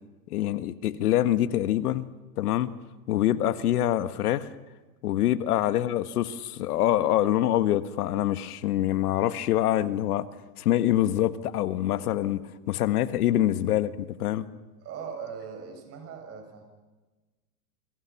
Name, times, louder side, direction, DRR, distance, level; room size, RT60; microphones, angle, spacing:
voice 1, 0.3-2.0 2.4-2.7 3.1-4.5 5.0-10.3 10.6-14.5, left 13 dB, 70° left, 1.5 m, -25 dB
voice 2, 14.8-16.6, right 6 dB, 30° right, 6.6 m, -40 dB
29.5 x 24.5 x 5.9 m
hypercardioid pair, 135°, 47 cm